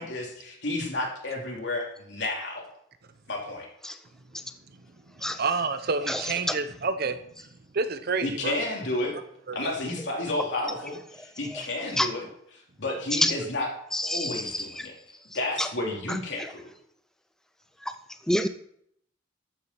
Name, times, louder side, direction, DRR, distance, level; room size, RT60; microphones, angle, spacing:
voice 1, 0.0-2.6 3.3-3.7 8.2-9.2 9.5-12.3 12.8-13.7 14.0-14.9 15.3-16.6, left 2 dB, 65° left, -1 dB, 3.2 m, -31 dB
voice 2, 5.4-7.2 7.7-8.6 9.5-9.7, right 4 dB, 55° right, 10 dB, 0.8 m, -28 dB
voice 3, 13.9-14.9 15.6-15.7 16.1-16.2 18.3-18.5, left 1 dB, 5° left, 9 dB, 0.5 m, -27 dB
13.5 x 7.2 x 6.0 m, 0.72 s
head